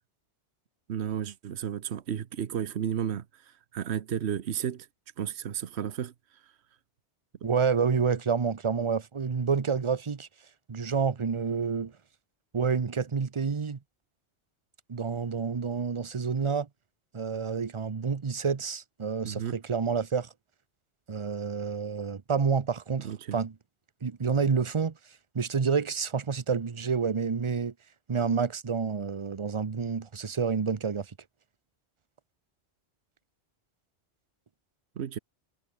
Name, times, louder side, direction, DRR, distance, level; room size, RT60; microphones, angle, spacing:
voice 1, 0.9-3.3 3.7-4.9 5.2-6.1 19.2-19.6 23.0-23.4 35.0-35.2, right 9 dB, 75° right, 1.2 m, -32 dB
voice 2, 7.4-10.3 10.7-11.9 12.5-13.8 14.9-16.7 17.1-20.3 21.1-23.5 24.0-24.9 25.3-27.7 28.1-31.1, right 5 dB, 30° right, 0.7 m, -28 dB
omnidirectional pair, 1.1 m